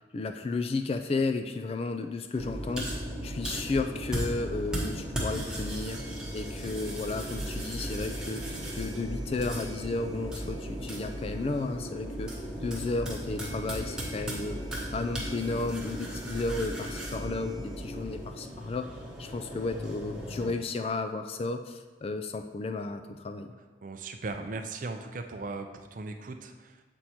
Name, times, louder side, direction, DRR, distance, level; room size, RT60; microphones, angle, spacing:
voice 1, 0.1-12.4 12.6-14.6 14.9-18.9 19.2-23.5, left 3 dB, 30° left, 7 dB, 0.3 m, -33 dB
sound 1, 2.4-20.5, equal, 5° right, 1.0 m, -36 dB
sound 2, 14.0-14.1, equal, 50° left, 1.6 m, -48 dB
voice 2, 23.8-26.8, right 3 dB, 45° right, 7 dB, 0.5 m, -38 dB
7.6 x 4.5 x 4.2 m, 1.3 s
head